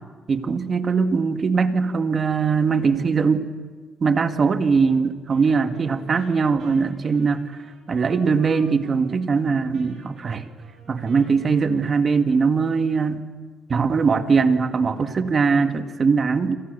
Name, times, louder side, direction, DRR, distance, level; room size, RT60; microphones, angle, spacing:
voice 1, 0.3-3.5 4.0-7.4 7.9-10.5 10.9-13.2 13.7-16.6, right 5 dB, 40° right, 8 dB, 2.0 m, -21 dB
Wind instrument woodwind instrument, 5.3-9.4 9.7-12.6, right 4 dB, 70° right, 6.6 m, -48 dB
27.0 x 27.0 x 6.9 m, 1.5 s
cardioid pair, 90°, 0 cm